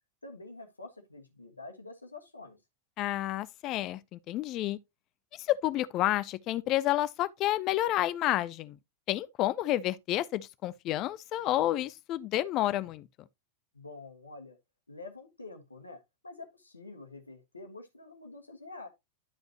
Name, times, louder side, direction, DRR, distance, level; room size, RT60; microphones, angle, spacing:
voice 1, 0.2-2.6 13.7-14.6 14.9-18.9, left 3 dB, 80° left, 1.5 m, -47 dB
voice 2, 3.0-4.8 5.3-8.8 9.1-13.1, left 14 dB, 35° left, 0.5 m, -30 dB
11.5 x 5.2 x 2.9 m
figure-of-eight pair, 90°, 0 cm